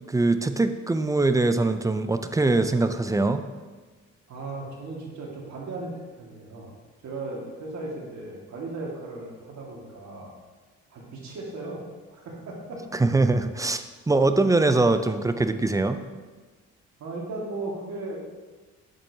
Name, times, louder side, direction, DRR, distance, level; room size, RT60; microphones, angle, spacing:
voice 1, 0.1-3.4 12.9-16.0, right 2 dB, 10° right, 9 dB, 0.4 m, -22 dB
voice 2, 4.3-6.7 7.0-10.4 10.9-11.8 12.1-12.8 17.0-18.4, right 2 dB, 65° right, -2 dB, 1.9 m, -36 dB
7.5 x 7.4 x 2.8 m, 1.3 s
cardioid pair, 90°, 30 cm